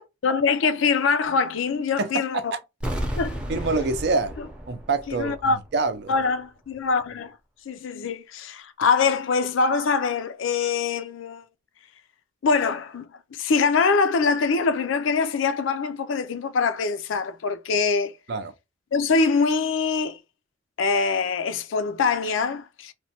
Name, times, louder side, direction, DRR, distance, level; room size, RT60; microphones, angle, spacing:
voice 1, 0.2-2.4 3.2-3.4 5.1-5.6 6.1-7.4 7.7-11.4 12.4-18.1 18.9-20.2 20.8-22.9, left 4 dB, 85° left, 0.4 m, -23 dB
voice 2, 2.0-2.6 3.5-4.3 4.7-6.1 18.3-18.5, right 3 dB, 60° right, 0.5 m, -26 dB
sound 1, 2.8-5.7 6.0-6.1, equal, 5° right, 0.5 m, -32 dB
3.0 x 2.1 x 2.8 m
head